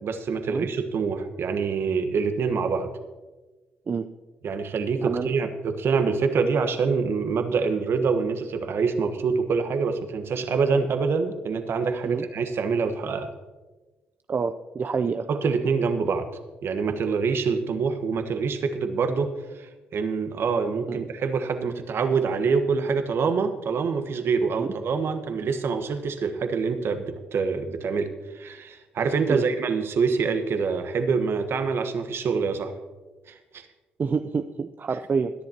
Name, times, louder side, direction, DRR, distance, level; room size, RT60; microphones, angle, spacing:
voice 1, 0.0-2.9 4.4-13.3 15.3-16.3 16.6-19.3 19.5-28.1 28.3-32.7 33.3-33.7, right 5 dB, 60° right, 8 dB, 1.3 m, -25 dB
voice 2, 5.0-5.3 12.0-12.2 14.3-15.3 20.9-21.1 24.6-24.7 29.3-29.4 34.0-35.3, right 5 dB, 40° right, 9 dB, 0.6 m, -27 dB
22.0 x 10.5 x 2.9 m, 1.2 s
hypercardioid pair, 45°, 5 cm